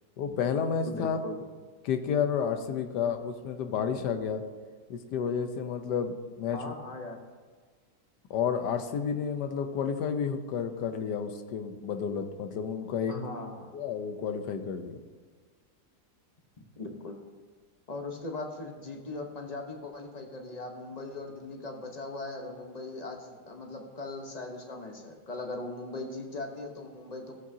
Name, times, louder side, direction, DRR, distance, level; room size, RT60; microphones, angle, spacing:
voice 1, 0.2-1.2 1.8-4.4 4.9-6.7 8.3-13.1 13.7-15.0, left 7 dB, 90° left, 7 dB, 1.4 m, -31 dB
voice 2, 0.9-1.4 6.5-7.2 13.1-13.7 16.8-17.2 17.9-27.4, left 2 dB, 30° left, 2 dB, 0.9 m, -39 dB
14.5 x 7.5 x 2.8 m, 1.5 s
omnidirectional pair, 1.8 m